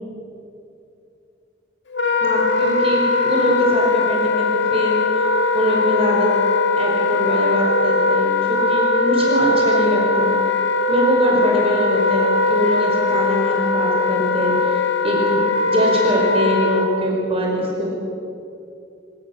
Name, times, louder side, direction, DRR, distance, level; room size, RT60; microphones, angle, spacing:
Wind instrument woodwind instrument, 1.9-16.9, left 3 dB, 70° left, 2.3 m, -20 dB
voice 1, 2.2-6.3 6.8-10.3 10.9-17.9, right 1 dB, 30° right, -2 dB, 5.0 m, -22 dB
26.5 x 24.5 x 7.2 m, 2.6 s
head